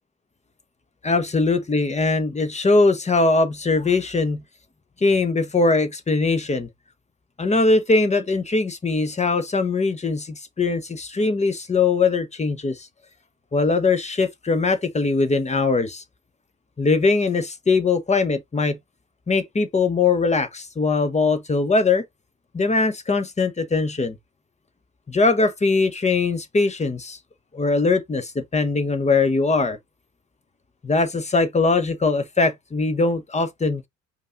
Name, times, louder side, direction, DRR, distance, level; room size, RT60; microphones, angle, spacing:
voice 1, 1.0-4.4 5.0-6.7 7.4-12.9 13.5-16.0 16.8-18.8 19.3-22.0 22.5-24.2 25.1-27.2 27.5-29.8 30.8-33.9, left 3 dB, 15° left, 1.0 m, -21 dB
5.2 x 2.6 x 3.7 m
figure-of-eight pair, 55°, 42 cm